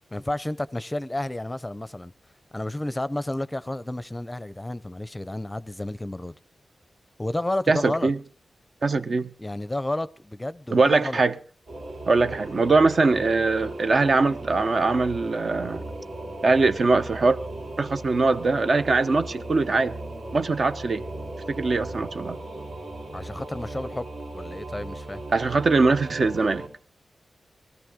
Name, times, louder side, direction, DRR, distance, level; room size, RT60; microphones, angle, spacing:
voice 1, 0.1-2.1 2.5-6.3 7.2-8.1 9.4-11.2 23.1-25.2, left 1 dB, 15° left, 0.6 m, -31 dB
voice 2, 7.7-8.2 8.8-9.3 10.7-11.3 12.1-15.8 16.4-17.4 17.8-20.0 20.3-21.0 21.5-22.4 25.3-26.6, right 3 dB, 60° right, 0.8 m, -22 dB
Singing / Musical instrument, 11.7-26.7, right 1 dB, 85° right, 3.8 m, -37 dB
19.5 x 13.5 x 3.7 m
cardioid pair, 75°, 0 cm